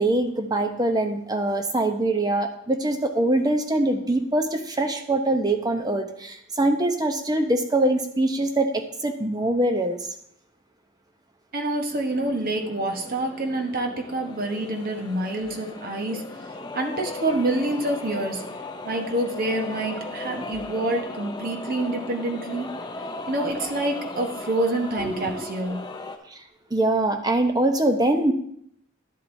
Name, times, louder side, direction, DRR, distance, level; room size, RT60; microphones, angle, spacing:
voice 1, 0.0-10.0 25.0-25.5 26.3-26.4 26.7-28.3, right 1 dB, 20° right, 6 dB, 0.7 m, -23 dB
voice 2, 11.5-16.2 16.7-18.4 18.8-22.7 23.3-25.8, right 1 dB, 45° right, 3 dB, 1.1 m, -27 dB
sound 1, 11.9-26.2, left 2 dB, 20° left, 0.5 m, -37 dB
11.5 x 7.5 x 2.7 m, 0.70 s
head